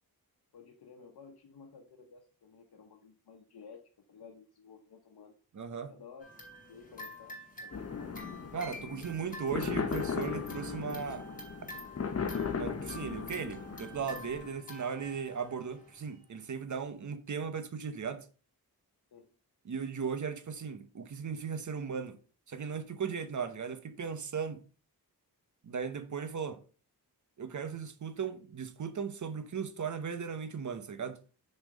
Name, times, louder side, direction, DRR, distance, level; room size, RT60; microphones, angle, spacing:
voice 1, 0.5-3.8 4.1-5.4 5.9-6.3 6.7-7.4 7.6-8.1 19.1-19.3, left 5 dB, 80° left, 1.0 m, -54 dB
voice 2, 5.5-5.9 8.5-11.3 12.6-18.3 19.6-22.2 22.5-24.7 25.6-26.6 27.4-31.2, right 6 dB, 50° right, 0.9 m, -37 dB
sound 1, 6.2-16.2, left 1 dB, 20° left, 2.6 m, -49 dB
sound 2, 7.7-14.5, left 6 dB, 40° left, 0.9 m, -37 dB
6.4 x 4.4 x 5.1 m
wide cardioid pair, 140°, 37 cm